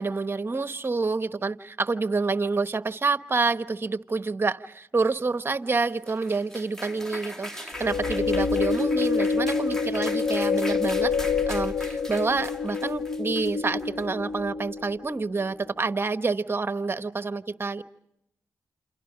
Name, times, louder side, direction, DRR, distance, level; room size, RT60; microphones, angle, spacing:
voice 1, 0.0-11.1 11.5-17.8, right 4 dB, 35° right, 11 dB, 1.1 m, -28 dB
sound 1, 5.8-14.1, left 1 dB, 5° left, 2.8 m, -40 dB
sound 2, 7.8-15.1, left 4 dB, 50° left, 1.2 m, -27 dB
28.5 x 28.5 x 5.0 m, 0.79 s
cardioid pair, 50°, 6 cm